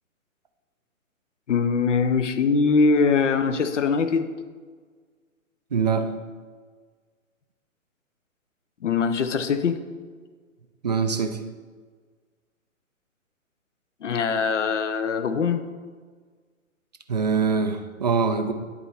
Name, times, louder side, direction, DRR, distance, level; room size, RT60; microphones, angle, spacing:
voice 1, 1.5-4.3 8.8-9.8 14.0-15.6, left 5 dB, 60° left, 8 dB, 0.7 m, -22 dB
voice 2, 5.7-6.1 10.8-11.4 17.1-18.5, right 5 dB, 35° right, 7 dB, 0.4 m, -23 dB
9.7 x 4.3 x 4.2 m, 1.5 s
figure-of-eight pair, 125°, 41 cm